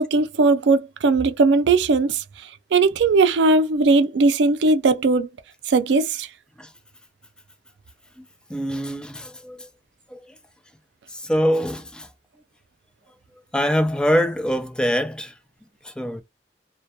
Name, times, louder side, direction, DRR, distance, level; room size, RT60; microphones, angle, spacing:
voice 1, 0.0-2.2 2.7-5.3 5.7-6.3, right 3 dB, 85° right, 0.4 m, -18 dB
voice 2, 8.2-9.7 10.1-10.3 11.1-12.1 13.5-15.3 15.8-16.2, equal, 5° left, 0.3 m, -24 dB
2.2 x 2.2 x 2.7 m
head